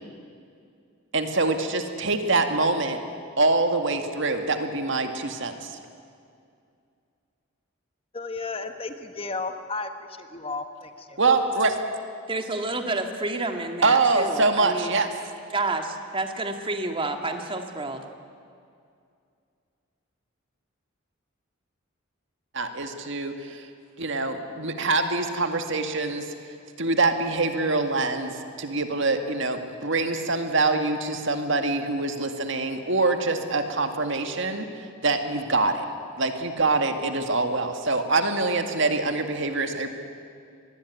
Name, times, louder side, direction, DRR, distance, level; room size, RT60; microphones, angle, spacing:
voice 1, 1.1-3.0 3.4-5.8 11.2-11.8 13.8-15.1 22.5-23.7 24.0-26.3 26.8-34.7 35.0-35.9 36.2-39.9, right 3 dB, 60° right, 6 dB, 2.0 m, -24 dB
voice 2, 8.1-9.9 10.2-11.2, left 3 dB, 25° left, 8 dB, 1.2 m, -33 dB
voice 3, 12.3-15.0 15.5-18.0, right 2 dB, 25° right, 5 dB, 2.0 m, -29 dB
25.5 x 20.0 x 9.7 m, 2.4 s
head